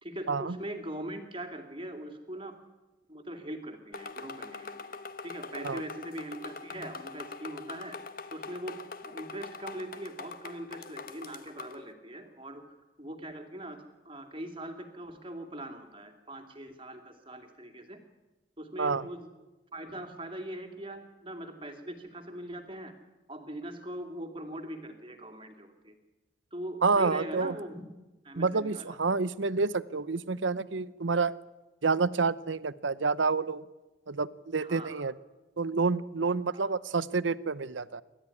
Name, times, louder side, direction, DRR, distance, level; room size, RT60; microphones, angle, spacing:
voice 1, 0.0-2.5 3.1-4.8 5.2-8.0 8.3-8.8 9.0-12.6 13.0-18.0 18.6-19.3 19.7-22.9 23.3-25.9 26.5-27.9 28.2-29.0 34.6-35.0 36.5-36.8, right 1 dB, 25° right, 6 dB, 2.6 m, -41 dB
sound 1, 3.9-11.8, left 4 dB, 50° left, 1.2 m, -43 dB
voice 2, 26.8-27.5 28.4-31.3 31.8-33.6 34.1-35.1 35.6-38.0, right 4 dB, 80° right, 17 dB, 0.8 m, -28 dB
28.5 x 13.0 x 9.7 m, 1.1 s
head